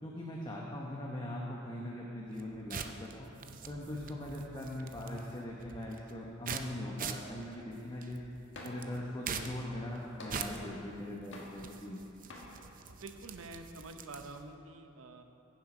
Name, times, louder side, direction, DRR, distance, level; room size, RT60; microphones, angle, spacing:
voice 1, 0.0-3.3 3.7-8.2 8.6-12.0, left 1 dB, 20° left, -3 dB, 1.0 m, -41 dB
sound 1, 2.3-14.5, right 6 dB, 40° right, 0.6 m, -45 dB
sound 2, 8.5-9.0 9.4-10.9 11.3-12.0 12.3-12.5, left 1 dB, 60° left, 1.8 m, -49 dB
voice 2, 12.8-15.2, right 2 dB, 75° right, 6 dB, 0.8 m, -48 dB
15.5 x 7.4 x 5.0 m, 2.9 s
head